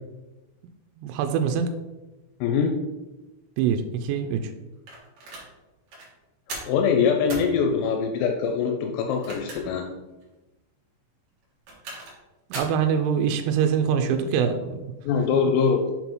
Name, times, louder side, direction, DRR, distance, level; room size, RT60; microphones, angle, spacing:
voice 1, 1.0-1.7 3.6-4.5 12.5-14.9, right 7 dB, 85° right, 6 dB, 3.3 m, -24 dB
voice 2, 2.4-2.8 6.7-9.9 15.0-15.8, left 6 dB, 85° left, 3 dB, 3.2 m, -23 dB
sound 1, 4.9-5.5 5.9-6.1 6.5-6.8 7.3-7.5 9.0-9.8 10.2-10.3 11.4-12.2 12.5-12.8, right 3 dB, 65° right, 2.2 m, -37 dB
7.2 x 5.4 x 3.0 m, 1.1 s
omnidirectional pair, 6.0 m